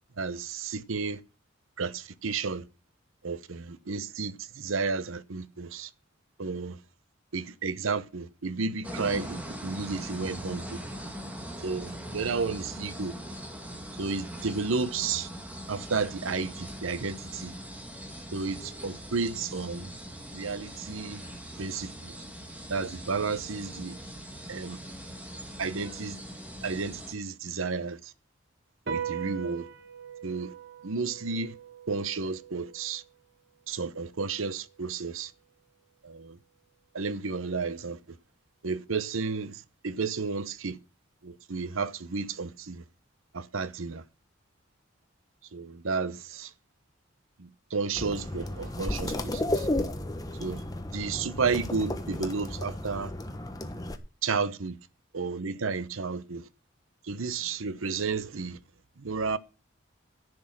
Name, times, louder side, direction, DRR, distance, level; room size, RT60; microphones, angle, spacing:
voice 1, 0.2-1.2 1.8-2.6 3.2-5.9 6.4-6.8 7.3-10.8 11.6-13.2 14.0-15.3 15.7-17.5 18.3-19.9 20.3-21.2 21.6-22.1 22.7-24.0 24.5-24.8 25.6-26.2 26.6-28.1 28.9-29.7 30.2-30.5 30.8-31.6 31.9-33.0 33.7-35.3 36.0-36.4 36.9-38.0 38.6-40.8 41.2-42.8 43.3-44.0 45.5-46.5 47.4-49.7 50.4-50.6 50.9-53.1 54.2-54.8 55.1-56.5 57.0-58.6 59.0-59.4, right 4 dB, 85° right, 0.8 m, -32 dB
sound 1, 8.8-27.1, equal, 5° right, 1.9 m, -41 dB
sound 2, 28.9-35.6, right 8 dB, 55° right, 1.1 m, -41 dB
sound 3, 47.9-54.0, left 1 dB, 20° left, 1.0 m, -33 dB
11.0 x 6.1 x 7.3 m
head